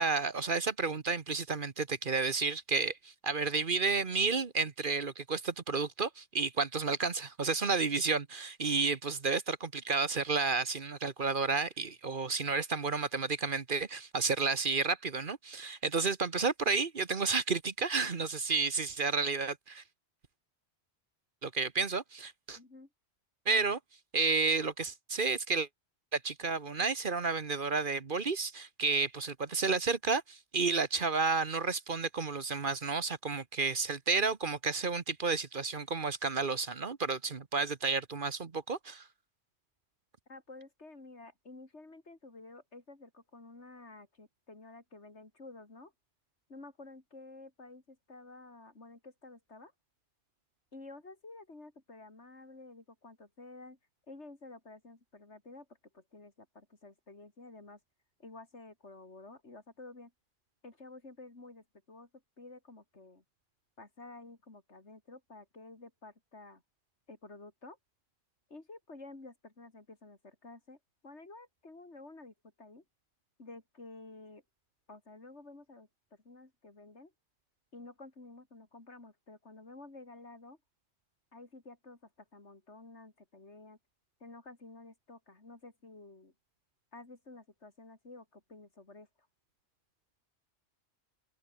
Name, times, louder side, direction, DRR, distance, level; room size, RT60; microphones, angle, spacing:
voice 1, 0.0-19.8 21.4-22.6 23.5-23.8 24.1-25.7 26.1-39.1, right 4 dB, 50° right, 1.3 m, -31 dB
voice 2, 22.6-22.9 40.3-45.9 46.5-49.7 50.7-53.8 54.1-55.7 55.9-57.8 58.2-60.1 60.6-62.1 62.4-63.2 63.8-66.6 67.1-67.8 68.5-70.8 71.0-72.8 73.4-74.4 74.9-75.9 76.2-77.1 77.7-80.6 81.3-83.8 84.2-86.3 86.9-89.1, left 2 dB, 75° left, 4.1 m, -51 dB
open air
omnidirectional pair, 1.2 m